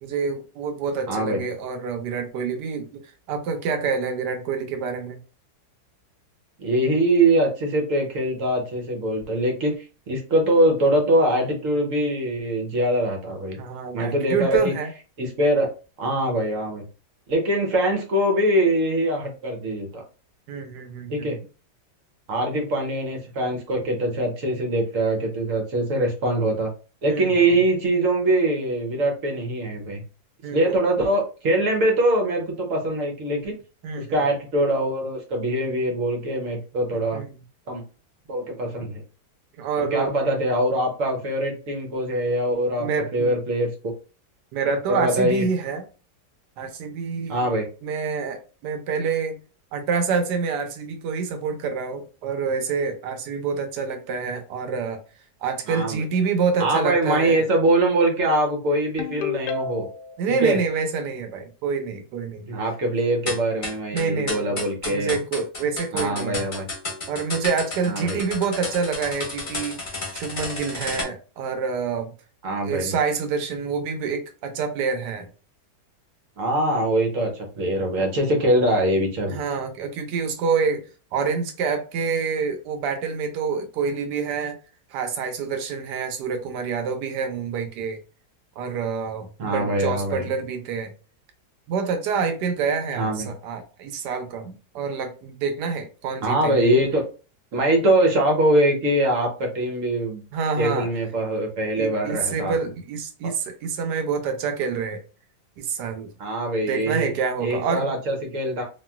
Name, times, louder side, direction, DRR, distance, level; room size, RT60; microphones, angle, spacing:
voice 1, 0.0-5.2 13.6-14.9 20.5-21.3 27.1-27.3 30.4-30.7 33.8-34.2 37.1-37.3 39.6-40.1 42.8-43.3 44.5-45.8 46.6-47.5 47.8-49.4 49.7-55.0 55.4-57.4 60.2-62.5 63.9-64.6 64.9-66.5 67.1-69.8 70.1-72.1 72.6-75.3 79.3-80.8 81.1-84.6 84.9-88.0 88.6-90.9 91.7-96.7 100.3-100.9 101.8-105.0 105.6-106.1 106.7-107.9, right 5 dB, 80° right, 1.2 m, -27 dB
voice 2, 1.1-1.4 6.6-13.6 13.9-14.7 15.2-15.7 16.0-16.8 17.3-20.0 21.1-21.4 22.3-26.7 27.0-30.0 30.5-33.5 34.0-37.2 37.7-37.8 38.3-39.0 39.8-43.9 44.9-45.5 47.3-47.7 55.7-56.0 56.6-59.9 60.4-60.6 62.5-65.2 65.9-66.7 67.8-68.2 72.4-72.9 76.4-79.4 89.4-90.3 93.0-93.3 96.2-97.0 97.5-100.2 100.6-102.5 103.2-103.3 106.2-107.1 107.4-108.6, right 1 dB, 60° right, 1.0 m, -23 dB
Ringtone, 59.0-60.2, left 5 dB, 80° left, 1.2 m, -30 dB
sound 1, 63.3-71.0, left 2 dB, 35° left, 1.0 m, -32 dB
3.0 x 2.6 x 2.2 m
omnidirectional pair, 1.8 m